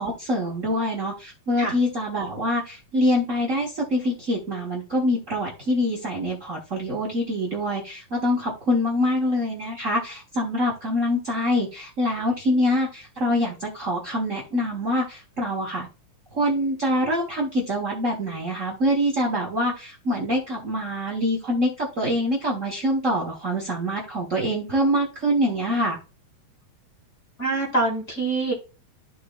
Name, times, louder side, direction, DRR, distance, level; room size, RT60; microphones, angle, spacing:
voice 1, 0.0-15.9 16.3-26.0, equal, 85° right, -1 dB, 0.6 m, -25 dB
voice 2, 27.4-28.5, right 2 dB, 25° left, 1 dB, 1.9 m, -24 dB
13.5 x 4.7 x 2.4 m, 0.32 s
omnidirectional pair, 3.7 m